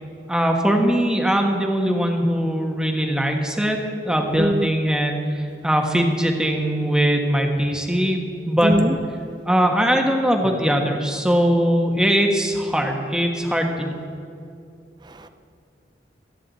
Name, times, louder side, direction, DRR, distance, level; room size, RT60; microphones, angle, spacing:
voice 1, 0.3-3.8 4.0-8.7 9.4-14.0, equal, 5° right, 2 dB, 1.4 m, -21 dB
voice 2, 4.3-4.7 8.6-8.9 15.1-15.3, right 1 dB, 25° right, 9 dB, 0.6 m, -22 dB
26.0 x 9.9 x 4.2 m, 2.5 s
head